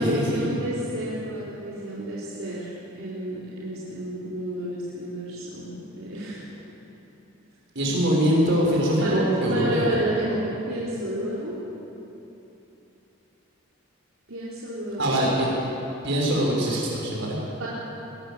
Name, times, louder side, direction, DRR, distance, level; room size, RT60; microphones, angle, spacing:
voice 1, 0.0-6.5 9.0-9.2 9.5-11.6 14.3-15.3 17.5-17.7, right 1 dB, 75° right, -7 dB, 3.6 m, -31 dB
voice 2, 7.7-10.0 15.0-15.5 16.0-17.4, equal, 55° right, -3 dB, 6.2 m, -22 dB
22.0 x 18.5 x 7.8 m, 3.0 s
head